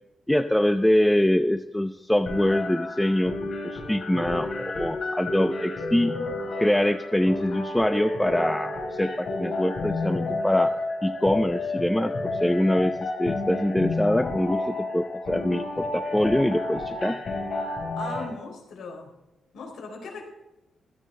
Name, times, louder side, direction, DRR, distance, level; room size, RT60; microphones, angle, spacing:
voice 1, 0.3-3.3 3.6-6.1 6.6-10.7 11.0-17.2, left 1 dB, 5° left, 9 dB, 0.4 m, -24 dB
sound 1, 2.3-18.3, left 2 dB, 40° left, 5.4 m, -30 dB
voice 2, 18.0-19.1 19.5-20.2, left 4 dB, 75° left, 2 dB, 4.1 m, -39 dB
15.5 x 14.0 x 3.7 m, 0.95 s
wide cardioid pair, 175°, 0 cm